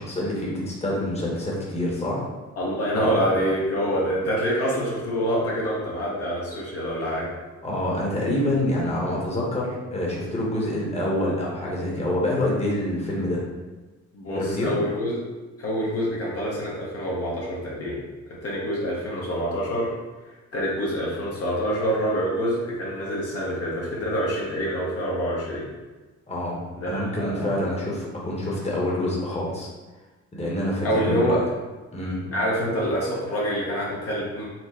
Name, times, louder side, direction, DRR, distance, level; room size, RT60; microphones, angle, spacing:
voice 1, 0.0-2.3 3.0-3.1 7.6-13.4 14.3-14.7 26.3-29.7 30.3-31.3 31.9-32.2, left 1 dB, 20° left, -4 dB, 1.2 m, -26 dB
voice 2, 2.6-7.3 14.1-15.2 15.6-18.0 18.3-19.9 20.5-25.7 26.8-27.5 30.8-31.5 32.3-34.5, equal, 50° left, -5 dB, 1.1 m, -26 dB
4.4 x 2.1 x 4.2 m, 1.2 s
cardioid pair, 90°, 30 cm